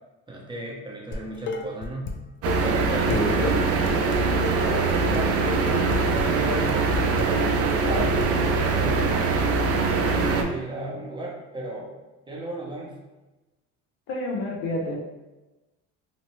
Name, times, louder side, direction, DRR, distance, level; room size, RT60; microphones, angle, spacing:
voice 1, 0.3-2.2 2.6-3.1 4.6-9.2 9.5-11.9 12.3-13.0, right 1 dB, 15° right, -3 dB, 0.7 m, -35 dB
Dishes pots and pans, 1.1-2.1 2.5-8.3, left 4 dB, 40° left, 0.4 m, -33 dB
sound 1, 2.4-10.4, right 4 dB, 45° right, 0.5 m, -23 dB
voice 2, 3.1-3.7 14.1-15.0, left 2 dB, 90° left, -1 dB, 0.7 m, -28 dB
2.9 x 2.1 x 2.9 m, 1.1 s
supercardioid pair, 95°, 33 cm